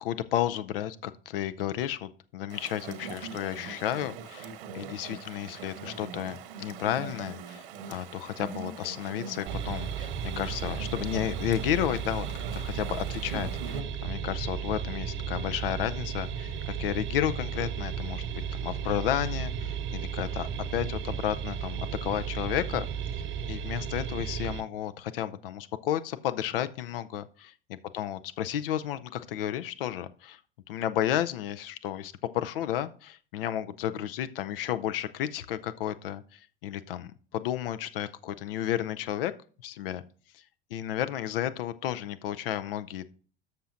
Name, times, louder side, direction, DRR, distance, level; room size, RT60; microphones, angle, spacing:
voice 1, 0.0-12.3 12.5-18.2 18.5-22.9 23.5-30.4 30.7-39.3 39.6-40.0 40.7-43.1, left 11 dB, 70° left, 13 dB, 0.6 m, -32 dB
Chatter / Stream, 2.5-13.8, right 6 dB, 70° right, 1.2 m, -42 dB
sound 1, 9.5-24.6, right 7 dB, 45° right, 0.9 m, -34 dB
13.0 x 5.9 x 2.6 m, 0.42 s
figure-of-eight pair, 70°, 29 cm